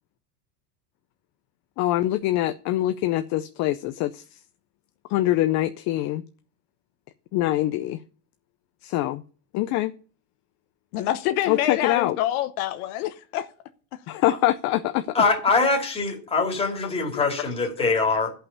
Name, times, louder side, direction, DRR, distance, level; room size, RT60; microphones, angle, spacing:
voice 1, 1.8-4.2 5.1-6.2 7.3-8.0 8.8-9.2 9.5-9.9 11.5-12.2 14.1-15.0, left 15 dB, 40° left, 0.5 m, -24 dB
voice 2, 10.9-13.5, left 12 dB, 65° left, 1.0 m, -26 dB
voice 3, 15.1-18.3, left 4 dB, 10° left, 2.6 m, -23 dB
12.0 x 5.6 x 6.9 m
supercardioid pair, 140°, 46 cm